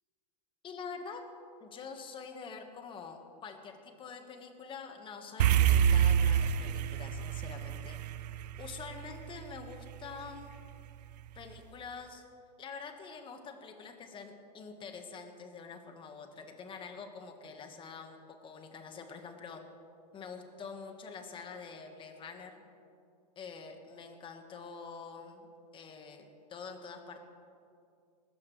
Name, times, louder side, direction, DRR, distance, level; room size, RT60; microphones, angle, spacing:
voice 1, 0.6-1.3 1.6-8.1 8.6-10.6 11.3-12.2 12.6-19.6 20.1-22.6 23.3-25.5 25.7-27.2, left 5 dB, 25° left, 5 dB, 1.5 m, -46 dB
sound 1, 5.4-9.9, right 9 dB, 75° right, 0.6 m, -27 dB
19.5 x 14.5 x 3.3 m, 2.4 s
hypercardioid pair, 130°, 21 cm